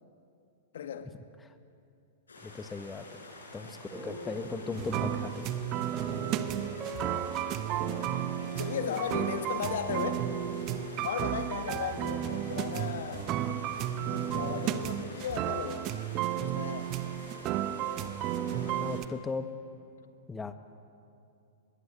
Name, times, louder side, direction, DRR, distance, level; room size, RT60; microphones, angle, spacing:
voice 1, 0.7-1.1 3.7-3.8 8.6-10.2 11.0-15.9 16.4-16.9, left 8 dB, 65° left, 8 dB, 1.8 m, -36 dB
sound 1, 2.3-19.0, left 2 dB, 80° left, 5.8 m, -49 dB
voice 2, 2.4-3.1 3.5-5.8 18.5-19.5 20.3-20.5, left 4 dB, 15° left, 9 dB, 1.3 m, -38 dB
sound 2, 3.9-13.1, right 2 dB, 20° right, 4.5 m, -44 dB
sound 3, 4.7-19.1, right 11 dB, 35° right, 1.0 m, -33 dB
23.5 x 22.0 x 8.1 m, 2.6 s
figure-of-eight pair, 105°, 0 cm